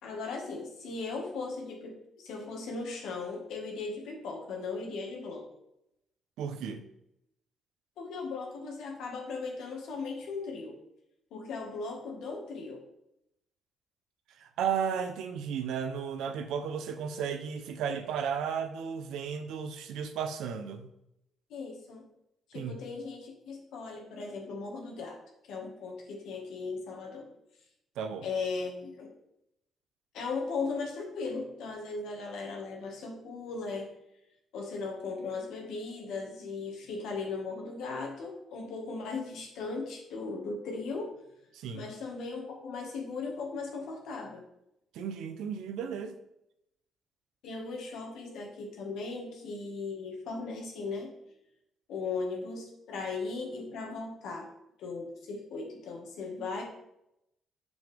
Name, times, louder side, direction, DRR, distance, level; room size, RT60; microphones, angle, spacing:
voice 1, 0.0-5.5 8.0-10.8 11.3-12.9 21.5-22.0 22.5-25.2 25.4-27.3 28.2-29.2 30.1-33.9 34.5-41.1 41.7-44.4 47.4-51.1 51.9-54.5 54.8-56.6, left 4 dB, 85° left, 1 dB, 1.8 m, -37 dB
voice 2, 6.4-6.8 14.4-20.9 22.5-22.7 28.0-28.3 41.5-41.9 44.9-46.2, right 7 dB, 85° right, 8 dB, 0.8 m, -34 dB
7.3 x 6.4 x 3.5 m, 0.81 s
cardioid pair, 90°, 0 cm